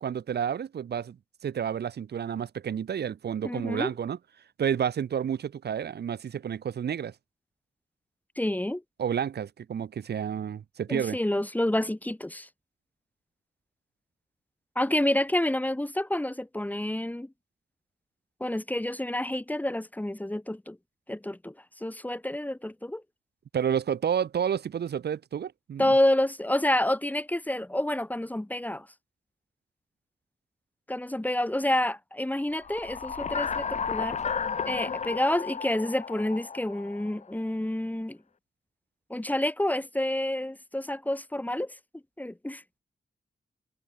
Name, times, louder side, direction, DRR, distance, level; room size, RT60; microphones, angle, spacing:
voice 1, 0.0-1.2 1.4-4.2 4.6-7.1 9.0-11.2 23.5-25.9, right 8 dB, 70° right, 0.8 m, -30 dB
voice 2, 3.4-3.9 8.4-8.8 10.9-12.5 14.7-17.3 18.4-20.8 21.1-21.5 21.8-23.0 25.8-28.9 30.9-34.2 34.6-38.2 39.1-41.7 42.2-42.6, left 1 dB, 10° left, 1.2 m, -28 dB
sound 1, 32.6-37.2, left 6 dB, 40° left, 0.6 m, -33 dB
wide cardioid pair, 95°, 18 cm